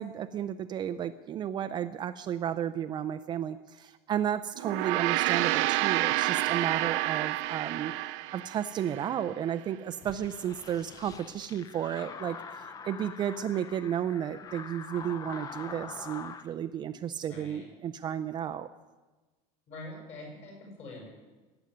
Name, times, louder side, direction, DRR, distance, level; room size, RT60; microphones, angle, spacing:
voice 1, 0.0-7.9 8.3-18.7, right 9 dB, 30° right, 10 dB, 0.5 m, -33 dB
Gong, 4.6-9.2, right 18 dB, 75° right, 0.6 m, -29 dB
sound 1, 10.0-16.5, left 5 dB, 20° left, 0.7 m, -44 dB
voice 2, 17.2-17.7 19.7-21.1, left 2 dB, 40° left, 0 dB, 6.5 m, -44 dB
17.5 x 7.9 x 9.6 m, 1.2 s
cardioid pair, 165°, 16 cm